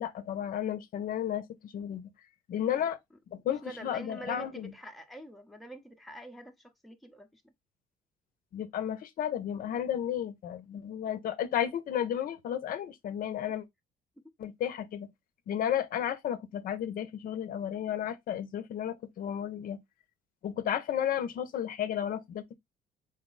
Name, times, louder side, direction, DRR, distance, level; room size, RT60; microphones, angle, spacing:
voice 1, 0.0-2.1 2.5-3.0 3.3-4.7 8.5-13.6 14.4-15.1 15.5-19.8 20.4-22.5, left 10 dB, 55° left, 0.6 m, -33 dB
voice 2, 2.6-2.9 3.6-7.4 14.2-14.3, right 1 dB, ahead, 0.6 m, -46 dB
4.0 x 2.0 x 3.8 m
cardioid pair, 110°, 17 cm